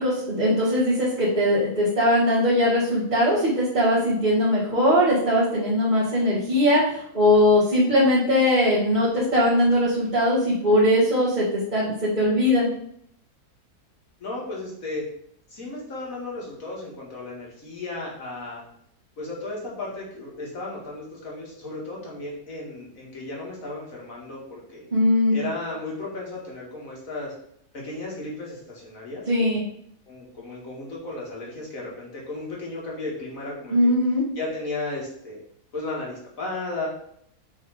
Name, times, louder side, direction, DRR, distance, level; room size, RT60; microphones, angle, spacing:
voice 1, 0.0-12.7 24.9-25.4 29.3-29.6 33.7-34.2, left 1 dB, 30° right, -10 dB, 1.8 m, -20 dB
voice 2, 14.2-15.0 15.5-18.6 19.2-24.8 25.3-27.3 27.7-29.6 30.1-33.9 34.3-35.4 35.7-36.9, left 2 dB, 55° left, -3 dB, 2.3 m, -34 dB
6.4 x 3.5 x 4.8 m, 0.69 s
omnidirectional pair, 1.7 m